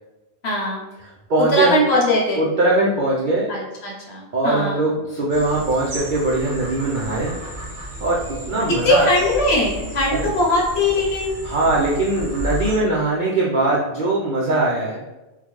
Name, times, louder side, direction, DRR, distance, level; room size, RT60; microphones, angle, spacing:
voice 1, 0.4-0.9 1.4-2.4 3.5-4.8 8.7-11.4, left 1 dB, 55° left, -2 dB, 0.9 m, -20 dB
voice 2, 1.3-1.8 2.4-3.5 4.3-7.3 8.0-8.2 8.5-9.1 10.1-10.3 11.4-15.0, right 2 dB, 75° right, -5 dB, 0.4 m, -21 dB
sound 1, 5.3-12.8, equal, 45° right, 0.8 m, -33 dB
3.7 x 2.2 x 3.0 m, 1.1 s
omnidirectional pair, 1.5 m